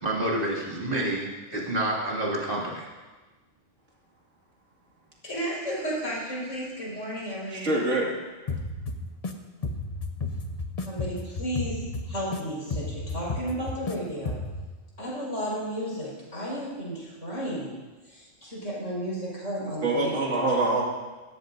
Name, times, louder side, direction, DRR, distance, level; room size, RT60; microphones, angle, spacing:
voice 1, 0.0-2.9, right 1 dB, 40° right, -4 dB, 2.8 m, -28 dB
voice 2, 5.2-7.7 10.9-11.8 12.1-14.4 15.0-17.8 18.1-20.4, equal, 65° left, -6 dB, 5.6 m, -33 dB
voice 3, 7.5-8.1 19.8-20.8, right 2 dB, 65° right, -2 dB, 2.5 m, -25 dB
sound 1, 8.5-9.3 9.6-12.4 12.7-13.9 14.3-14.6, left 3 dB, 35° left, 0.8 m, -32 dB
18.0 x 14.0 x 2.6 m, 1.2 s
omnidirectional pair, 1.4 m